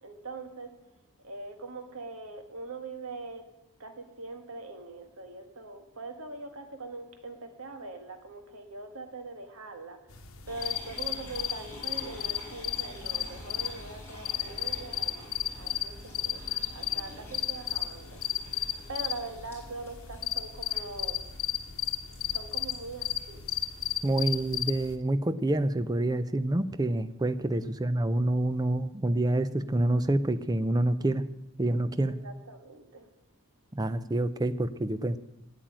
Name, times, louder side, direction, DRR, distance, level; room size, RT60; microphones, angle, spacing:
voice 1, 0.0-0.7 1.2-3.4 3.8-16.5 16.7-18.6 18.9-21.3 22.3-23.4 27.5-27.7 32.0-33.1, right 3 dB, 75° right, 1.6 m, -42 dB
sound 1, 10.1-25.0, left 11 dB, 70° left, 1.1 m, -34 dB
sound 2, 10.5-24.2, left 1 dB, 10° left, 4.5 m, -49 dB
voice 2, 24.0-31.2 31.6-32.1 33.7-35.2, right 1 dB, 15° right, 0.4 m, -27 dB
9.0 x 8.9 x 8.9 m
head